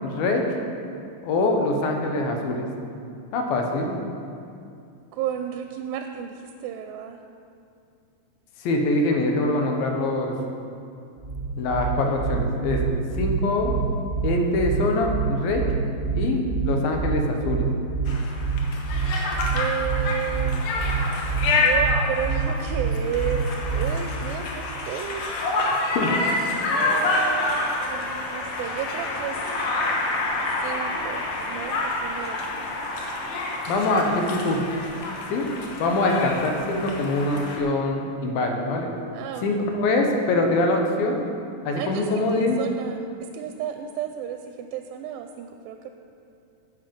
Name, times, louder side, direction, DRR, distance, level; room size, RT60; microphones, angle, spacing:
voice 1, 0.0-0.4 1.2-2.7 3.3-4.0 8.6-10.4 11.6-12.8 13.2-13.7 14.2-15.6 16.1-17.7 25.7-26.2 33.7-34.6 35.3-35.5 35.8-38.9 39.4-41.2 41.7-42.6, left 2 dB, 80° left, 2 dB, 2.8 m, -24 dB
voice 2, 5.1-7.2 19.5-20.6 21.5-23.5 23.7-25.9 26.7-29.4 30.6-32.4 39.1-39.5 41.7-45.9, right 9 dB, 85° right, 6 dB, 2.3 m, -33 dB
sound 1, 11.2-24.0, right 5 dB, 25° right, 2.1 m, -27 dB
Conversation, 18.1-37.6, left 2 dB, 65° left, 2.0 m, -28 dB
10.0 x 8.3 x 5.2 m, 2.5 s
omnidirectional pair, 4.2 m